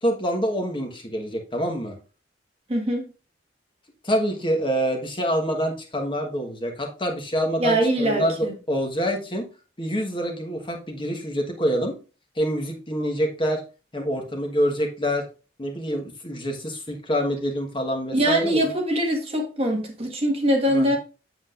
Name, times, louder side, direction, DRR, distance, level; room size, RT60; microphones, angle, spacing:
voice 1, 0.0-1.9 4.0-9.5 9.8-11.9 12.4-13.6 13.9-15.2 15.6-18.7 20.7-21.0, equal, 30° left, 1.3 m, -26 dB
voice 2, 2.7-3.1 7.6-8.5 18.1-21.0, right 1 dB, 35° right, 1.5 m, -23 dB
7.8 x 7.5 x 2.5 m
head